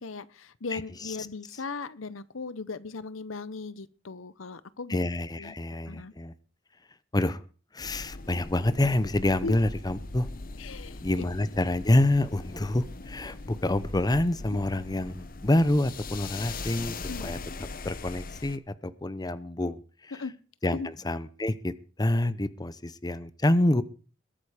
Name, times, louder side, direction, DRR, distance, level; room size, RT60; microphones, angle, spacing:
voice 1, 0.0-5.0 5.4-5.5 5.9-6.1 9.4-9.6 10.6-11.2 14.5-14.6 17.0-17.3 20.1-20.3 20.7-20.9, left 4 dB, 80° left, 0.8 m, -38 dB
voice 2, 0.7-1.2 4.9-6.3 7.1-7.4 7.7-10.3 11.0-16.9 17.2-17.4 17.8-19.8 20.6-21.7 22.0-23.8, left 1 dB, 20° left, 0.7 m, -27 dB
sound 1, 7.8-18.6, left 3 dB, 45° left, 0.9 m, -40 dB
21.0 x 8.9 x 5.0 m
head